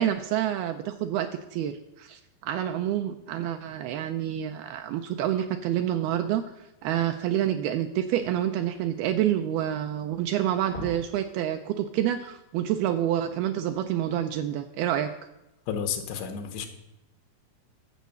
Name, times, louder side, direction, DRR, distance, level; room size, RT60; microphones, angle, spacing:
voice 1, 0.0-6.4 6.8-15.1, right 11 dB, 90° right, 7 dB, 2.1 m, -28 dB
sound 1, 7.5-7.6 7.8-10.1 10.5-11.2 11.6-11.7 12.2-12.3, left 1 dB, 25° left, 3.5 m, -44 dB
voice 2, 15.7-16.7, left 7 dB, 80° left, 6 dB, 3.3 m, -31 dB
10.5 x 7.3 x 6.9 m, 0.92 s
omnidirectional pair, 5.0 m